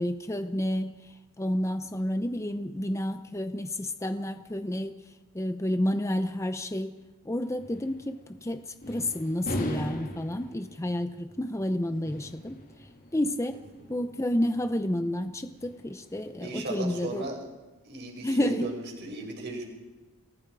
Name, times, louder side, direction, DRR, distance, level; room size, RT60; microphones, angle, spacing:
voice 1, 0.0-7.0 7.2-13.6 13.9-17.3 18.2-18.7, left 1 dB, 15° left, 9 dB, 0.7 m, -30 dB
sound 1, 7.4-17.2, equal, 40° left, 2.6 m, -41 dB
voice 2, 16.4-17.4 17.8-19.6, right 2 dB, 50° right, 0 dB, 5.6 m, -36 dB
30.0 x 19.5 x 4.8 m, 1.2 s
head